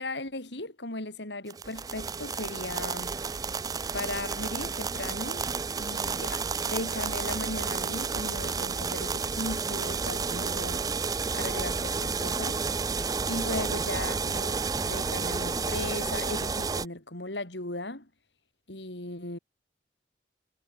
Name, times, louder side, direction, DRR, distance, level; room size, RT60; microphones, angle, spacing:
voice 1, 0.0-3.2 3.9-5.5 5.8-10.9 11.3-18.1 18.7-19.4, left 2 dB, 75° left, 4.4 m, -37 dB
sound 1, 1.5-16.8, right 5 dB, 20° right, 0.4 m, -31 dB
head